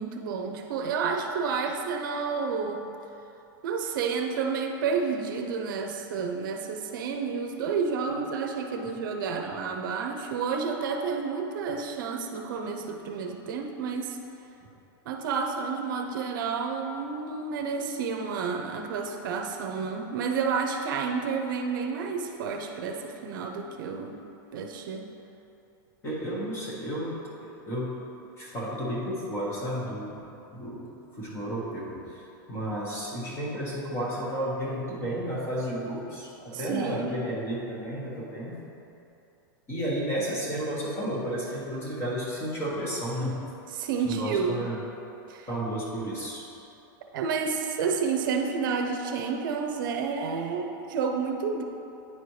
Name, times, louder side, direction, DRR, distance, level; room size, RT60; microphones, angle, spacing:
voice 1, 0.0-2.9 3.6-14.2 15.1-24.2 24.5-25.1 36.5-37.1 43.7-44.7 45.3-45.5 47.1-51.6, right 5 dB, 65° right, 3 dB, 0.6 m, -30 dB
voice 2, 26.0-27.9 28.4-30.2 30.5-38.6 39.7-43.4 44.0-44.8 45.5-46.4, right 1 dB, 20° left, -6 dB, 1.4 m, -32 dB
9.6 x 4.3 x 3.2 m, 2.8 s
supercardioid pair, 155°, 12 cm